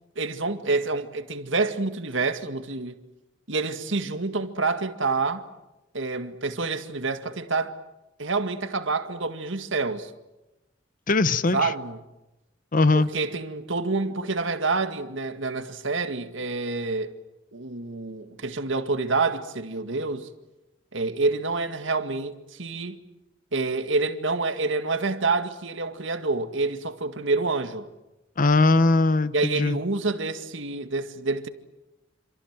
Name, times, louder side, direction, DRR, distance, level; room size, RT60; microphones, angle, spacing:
voice 1, 0.2-3.0 3.5-5.5 5.9-7.7 8.2-10.1 11.5-12.0 12.9-17.1 17.5-20.3 20.9-23.0 23.5-27.8 29.3-31.5, right 3 dB, 70° right, 2.0 m, -27 dB
voice 2, 11.1-11.7 12.7-13.1 28.4-29.8, left 3 dB, 45° left, 0.9 m, -20 dB
27.5 x 26.5 x 7.6 m
head